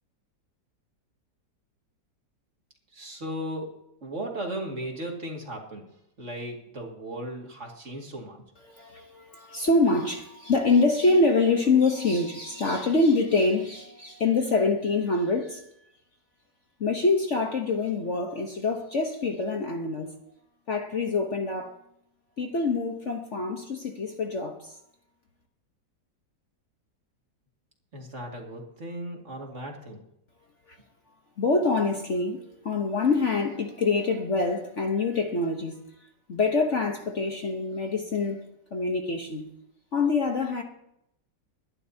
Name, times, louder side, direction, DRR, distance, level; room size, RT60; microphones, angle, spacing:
voice 1, 2.9-5.9 6.2-8.4 27.9-30.0, right 1 dB, 40° right, 2.5 m, -36 dB
voice 2, 8.7-15.6 16.8-20.1 20.7-21.8 22.4-24.8 30.7-30.8 31.4-35.8 36.3-39.5 39.9-40.6, left 3 dB, 45° left, 1.3 m, -25 dB
22.5 x 11.0 x 2.8 m
omnidirectional pair, 1.9 m